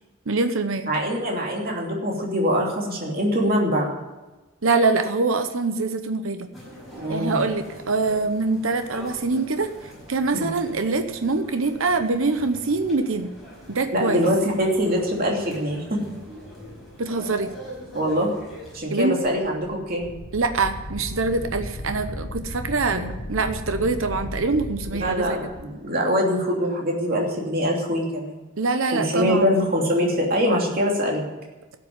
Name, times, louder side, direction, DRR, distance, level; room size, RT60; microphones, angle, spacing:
voice 1, 0.3-0.9 4.6-6.5 7.1-13.3 13.7-14.2 17.0-17.5 18.9-19.2 20.3-25.4 28.6-29.5, right 3 dB, 75° right, 8 dB, 0.9 m, -24 dB
voice 2, 0.9-3.9 7.0-7.4 10.3-10.5 13.9-16.0 17.9-18.3 18.7-20.1 22.9-23.1 25.0-28.4 28.9-31.2, equal, 45° right, -1 dB, 2.9 m, -23 dB
sound 1, 6.5-18.8, equal, ahead, 5.6 m, -43 dB
Wind, 19.2-25.6, left 1 dB, 70° left, 1.4 m, -35 dB
12.5 x 8.4 x 9.4 m, 1.1 s
head